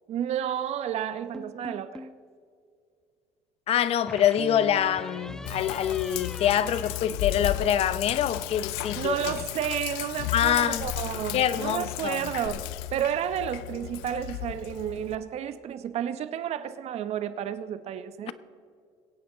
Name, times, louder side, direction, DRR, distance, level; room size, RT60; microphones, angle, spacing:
voice 1, 0.1-2.1 8.9-18.3, right 9 dB, 55° right, 0.9 m, -31 dB
sound 1, 1.3-2.2 4.1-7.8, left 1 dB, 5° left, 0.5 m, -43 dB
voice 2, 3.7-9.3 10.3-10.9 11.3-12.3, left 10 dB, 50° left, 0.8 m, -25 dB
Sink (filling or washing), 5.5-15.2, left 15 dB, 90° left, 0.5 m, -35 dB
22.0 x 8.7 x 4.0 m
supercardioid pair, 95°, 13 cm